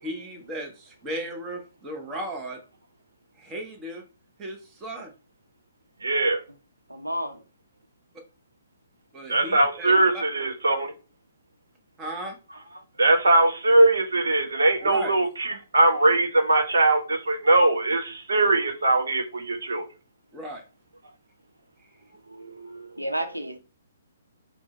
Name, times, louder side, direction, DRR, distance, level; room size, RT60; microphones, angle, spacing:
voice 1, 0.0-2.6 3.4-4.0 4.4-5.1 9.1-10.2 12.0-12.4 14.8-15.1 20.3-20.6, right 1 dB, 15° right, 0.7 m, -35 dB
voice 2, 6.0-6.4 9.3-10.9 13.0-19.8 22.3-22.9, right 2 dB, 65° right, 0.9 m, -21 dB
voice 3, 6.9-7.4 23.0-23.6, right 1 dB, 90° right, 0.6 m, -30 dB
4.7 x 2.1 x 4.1 m
figure-of-eight pair, 125°, 0 cm